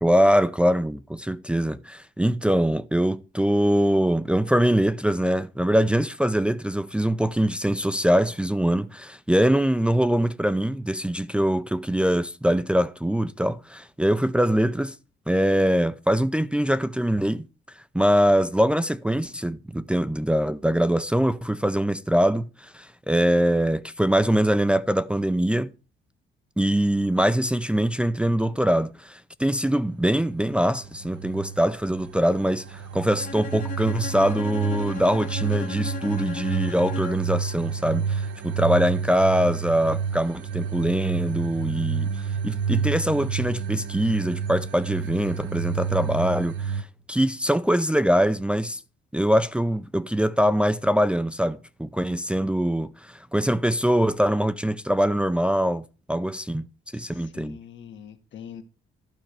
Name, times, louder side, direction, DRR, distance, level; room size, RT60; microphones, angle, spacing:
voice 1, 0.0-14.9 15.3-17.5 17.9-25.7 26.6-48.8 49.1-56.7 56.9-57.6, equal, 5° right, 0.5 m, -23 dB
sound 1, 30.5-46.8, right 6 dB, 70° right, 0.9 m, -30 dB
Bowed string instrument, 33.2-37.4, left 4 dB, 40° left, 1.0 m, -36 dB
voice 2, 56.9-58.6, left 8 dB, 70° left, 1.6 m, -43 dB
12.0 x 4.5 x 6.7 m
cardioid pair, 90°, 20 cm